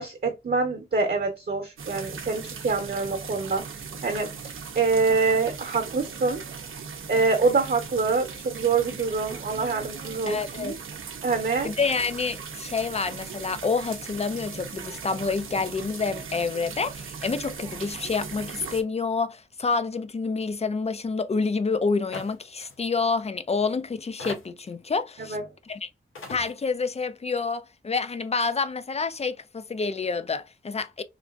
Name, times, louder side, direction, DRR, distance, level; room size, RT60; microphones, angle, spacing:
voice 1, 0.0-3.6 4.0-6.4 7.1-10.7 11.2-11.7 25.2-25.4, right 4 dB, 50° right, 0.8 m, -25 dB
sound 1, 1.8-18.8, right 6 dB, 75° right, 0.6 m, -39 dB
voice 2, 10.3-10.7 11.6-25.4 25.7-25.9 26.3-31.0, left 4 dB, 30° left, 0.4 m, -28 dB
sound 2, 22.1-22.4 22.6-22.7 23.6-23.7 24.2-24.7 25.7-25.8 26.2-26.5, left 3 dB, 80° left, 0.9 m, -38 dB
3.2 x 2.4 x 2.4 m
cardioid pair, 60°, 21 cm